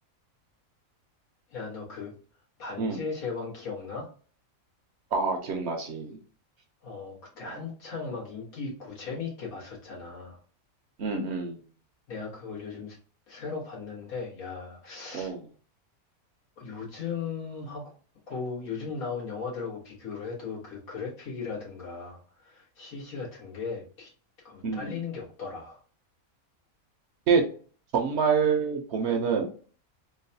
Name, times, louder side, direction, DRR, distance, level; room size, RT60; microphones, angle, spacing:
voice 1, 1.5-2.1 2.6-4.1 6.8-10.4 12.1-13.0 13.3-15.3 16.6-17.9 18.3-24.1 24.4-25.8, left 5 dB, 85° left, -4 dB, 1.9 m, -37 dB
voice 2, 5.1-6.2 7.4-7.5 11.0-11.6 15.1-15.4 24.6-25.0 27.3-27.4 27.9-29.5, right 5 dB, 60° right, 3 dB, 0.7 m, -26 dB
3.9 x 2.2 x 2.6 m, 0.42 s
omnidirectional pair, 1.5 m